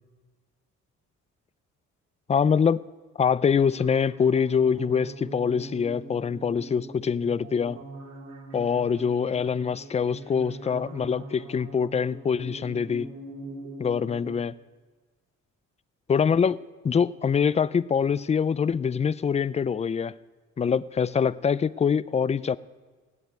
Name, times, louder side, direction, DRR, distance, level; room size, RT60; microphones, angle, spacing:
voice 1, 2.3-2.8 3.2-7.8 8.5-13.1 13.8-14.5 16.1-16.6 16.8-20.1 20.6-22.6, left 6 dB, 20° left, 0.4 m, -24 dB
sound 1, 3.5-14.4, right 2 dB, 60° right, 2.7 m, -42 dB
17.0 x 6.9 x 9.4 m
cardioid pair, 90°, 30 cm